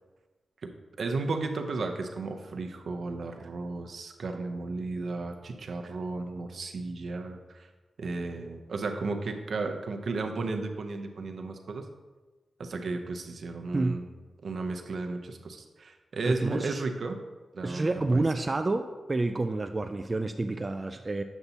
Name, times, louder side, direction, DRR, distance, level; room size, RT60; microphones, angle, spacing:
voice 1, 1.0-7.7 8.0-11.9 12.6-14.1 14.4-17.2 17.5-18.2, right 3 dB, 70° right, 4 dB, 0.6 m, -34 dB
voice 2, 16.3-16.8 17.6-21.2, right 2 dB, 35° right, 6 dB, 0.3 m, -29 dB
8.1 x 5.6 x 2.8 m, 1.2 s
cardioid pair, 55°, 0 cm